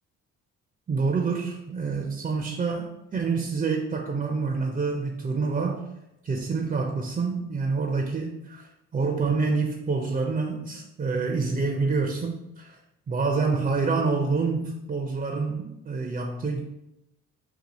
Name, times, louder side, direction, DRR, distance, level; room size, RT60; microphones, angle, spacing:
voice 1, 0.9-5.9 6.2-12.8 13.1-16.6, right 4 dB, 25° right, 2 dB, 0.4 m, -27 dB
2.7 x 2.3 x 4.1 m, 0.86 s
cardioid pair, 90°, 30 cm